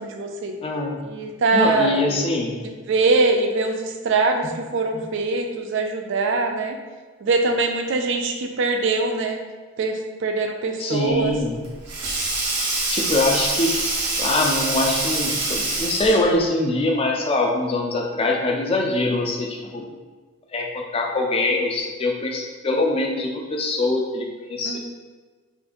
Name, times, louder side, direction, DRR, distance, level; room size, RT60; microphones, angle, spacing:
voice 1, 0.0-0.5 1.1-2.3 2.9-6.8 7.2-9.4 9.8-11.3 24.7-24.8, right 3 dB, 55° right, 4 dB, 0.3 m, -22 dB
voice 2, 0.6-1.0 1.5-2.6 4.4-4.5 10.8-11.6 12.9-13.7 14.2-19.9 20.5-24.8, left 2 dB, 25° left, 0 dB, 0.3 m, -23 dB
Sink (filling or washing), 11.2-16.4, right 2 dB, 90° right, 0.8 m, -25 dB
2.5 x 2.4 x 3.6 m, 1.4 s
head